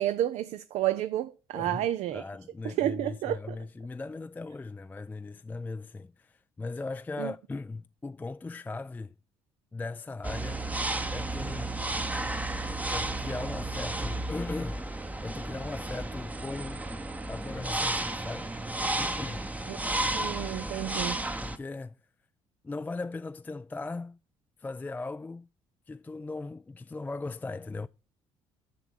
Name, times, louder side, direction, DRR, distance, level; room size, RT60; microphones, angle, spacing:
voice 1, 0.0-2.2 2.6-3.6 7.2-7.3 19.7-21.3, right 12 dB, 65° right, 0.5 m, -31 dB
voice 2, 1.5-1.8 2.1-9.1 9.7-10.6 11.1-11.7 12.9-14.8 15.2-16.8 17.3-18.5 19.0-19.4 21.4-22.0 22.6-24.2 24.6-25.5 25.9-27.9, left 3 dB, 15° left, 0.3 m, -38 dB
sound 1, 10.2-21.6, right 2 dB, 10° right, 0.8 m, -33 dB
sound 2, 13.8-20.9, right 10 dB, 50° right, 2.8 m, -56 dB
6.9 x 6.0 x 6.3 m
hypercardioid pair, 60°, 12 cm